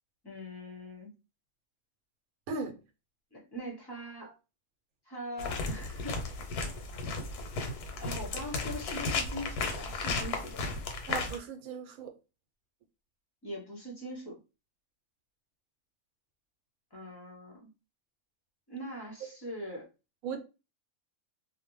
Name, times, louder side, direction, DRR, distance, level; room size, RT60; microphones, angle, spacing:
voice 1, 0.2-1.1 3.3-4.4 5.0-6.3 8.0-10.8 13.4-14.4 16.9-17.7 18.7-19.9, equal, 25° left, 0.6 m, -42 dB
voice 2, 2.5-2.8 11.1-12.1 20.2-20.4, right 5 dB, 75° right, 1.0 m, -37 dB
sound 1, 5.4-11.4, left 3 dB, 90° left, 1.2 m, -34 dB
2.5 x 2.1 x 3.0 m
omnidirectional pair, 1.6 m